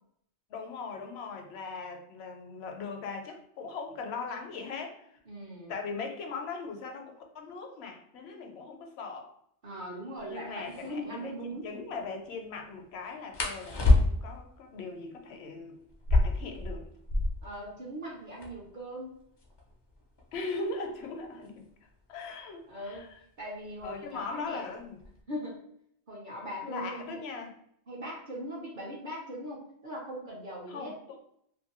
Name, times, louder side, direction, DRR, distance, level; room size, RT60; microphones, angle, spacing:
voice 1, 0.5-5.2 5.7-9.3 10.3-15.8 16.1-16.9 20.3-21.6 22.1-23.2 23.8-25.0 26.6-27.5 30.7-31.2, left 4 dB, 75° left, 3 dB, 0.8 m, -39 dB
voice 2, 5.3-5.7 9.6-11.7 17.4-19.2 22.7-23.1 23.4-24.7 25.3-25.6 26.1-27.2 27.9-30.9, equal, 55° right, -2 dB, 0.8 m, -40 dB
sound 1, 10.2-10.3 10.6-10.9 13.3-14.4 15.9-17.5 17.9-18.0 18.2-18.7 19.4-21.9 22.9-23.2 23.6-24.1 24.5-25.2, left 2 dB, 45° left, 0.3 m, -27 dB
2.6 x 2.5 x 2.9 m, 0.72 s
omnidirectional pair, 1.1 m